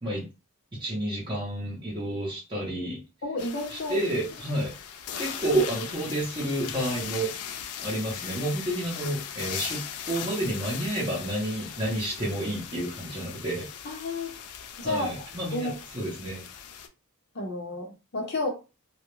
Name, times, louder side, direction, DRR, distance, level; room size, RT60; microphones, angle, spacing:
voice 1, 0.8-3.0 3.7-4.7 5.2-7.3 7.8-13.7 14.8-16.5, right 1 dB, 20° right, -5 dB, 0.7 m, -30 dB
voice 2, 3.2-4.0 13.8-14.3 14.8-15.1 15.5-15.7 17.3-18.5, left 2 dB, 50° left, 2 dB, 0.7 m, -31 dB
sound 1, 3.4-16.9, left 8 dB, 85° left, 0.4 m, -39 dB
2.3 x 2.1 x 3.0 m, 0.30 s
head